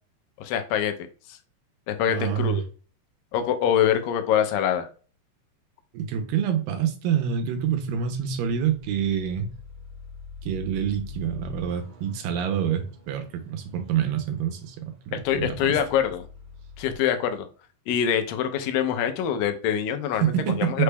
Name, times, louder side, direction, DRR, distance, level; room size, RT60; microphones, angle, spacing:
voice 1, 0.4-0.9 1.9-2.6 3.3-4.9 15.3-16.3 16.8-17.5 17.9-20.3 20.6-20.8, left 9 dB, 85° left, 8 dB, 2.3 m, -24 dB
voice 2, 2.1-2.6 5.9-9.5 10.4-15.8 20.2-20.8, right 8 dB, 90° right, 5 dB, 2.3 m, -27 dB
sound 1, 7.6-17.0, left 5 dB, 65° right, 1.5 m, -45 dB
5.9 x 2.2 x 3.3 m, 0.38 s
omnidirectional pair, 4.0 m